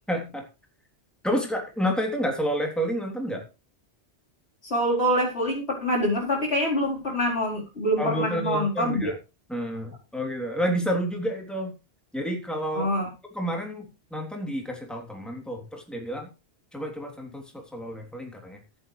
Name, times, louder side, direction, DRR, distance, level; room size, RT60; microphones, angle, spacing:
voice 1, 0.1-0.4 1.2-3.4 8.0-9.2 9.5-11.7 12.1-12.9 13.3-16.3 16.7-18.6, equal, ahead, 1 dB, 3.3 m, -29 dB
voice 2, 4.6-9.1 12.7-13.1, equal, 70° left, -2 dB, 4.7 m, -25 dB
14.0 x 10.5 x 3.3 m, 0.29 s
omnidirectional pair, 1.1 m